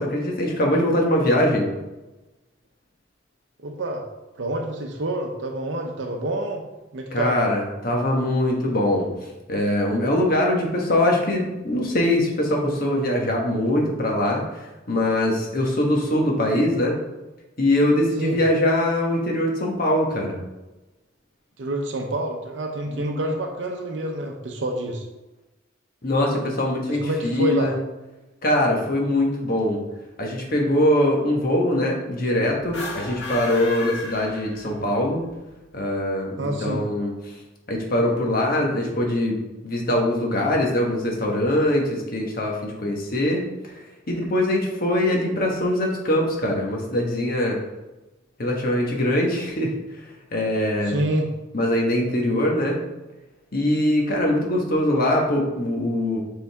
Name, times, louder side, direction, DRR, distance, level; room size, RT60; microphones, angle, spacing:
voice 1, 0.0-1.7 7.1-9.1 9.5-17.0 17.6-20.4 22.9-23.3 26.0-27.7 28.4-29.8 30.2-35.3 35.7-37.4 37.7-39.4 39.6-43.7 44.1-47.6 48.4-49.7 50.3-51.0 51.5-52.8 53.5-56.2, left 1 dB, 50° left, 0 dB, 1.3 m, -22 dB
voice 2, 3.6-4.0 4.4-6.6 6.9-7.4 18.2-18.4 21.6-25.0 26.9-27.7 36.4-36.8 50.8-51.3, right 1 dB, 65° right, 2 dB, 0.7 m, -27 dB
sound 1, 32.6-35.0, left 2 dB, 65° left, 1.7 m, -33 dB
6.9 x 3.9 x 3.5 m, 1.0 s
head